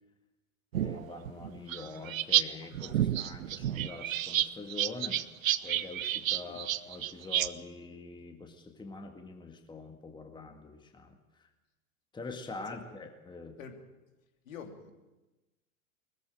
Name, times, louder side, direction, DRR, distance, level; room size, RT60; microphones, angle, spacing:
voice 1, 0.7-5.2 5.6-11.5 12.1-13.6, left 3 dB, 10° left, 5 dB, 1.9 m, -44 dB
sound 1, 0.7-2.4 2.7-7.5, right 12 dB, 65° right, 0.8 m, -30 dB
voice 2, 14.4-14.9, left 6 dB, 65° left, 4 dB, 2.9 m, -46 dB
20.5 x 14.5 x 8.8 m, 1.1 s
figure-of-eight pair, 90°, 43 cm